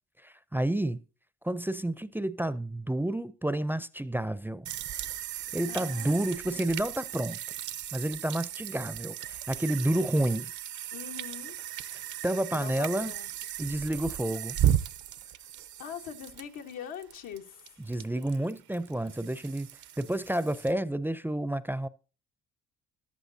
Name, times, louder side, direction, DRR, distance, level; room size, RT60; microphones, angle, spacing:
voice 1, 0.2-1.0 1.4-4.7 5.5-7.4 7.9-10.5 12.2-13.1 13.6-14.6 17.9-19.7 20.0-21.9, right 1 dB, 5° right, 0.5 m, -30 dB
sound 1, 4.6-20.7, right 11 dB, 75° right, 0.7 m, -35 dB
voice 2, 5.7-6.2 6.5-6.8 10.9-11.6 12.5-13.3 15.2-15.5 15.8-17.7, left 8 dB, 90° left, 1.4 m, -43 dB
14.5 x 11.0 x 2.7 m
cardioid pair, 90°, 30 cm